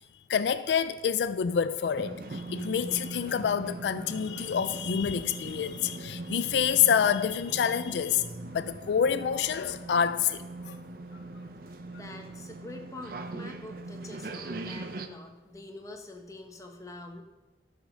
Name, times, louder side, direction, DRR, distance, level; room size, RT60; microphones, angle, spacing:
voice 1, 0.3-10.7, left 7 dB, 75° left, 0.4 m, -27 dB
sound 1, 2.0-15.1, right 2 dB, 50° right, 0.6 m, -41 dB
voice 2, 11.9-17.2, left 2 dB, 20° left, 1.0 m, -45 dB
12.5 x 5.2 x 6.3 m
head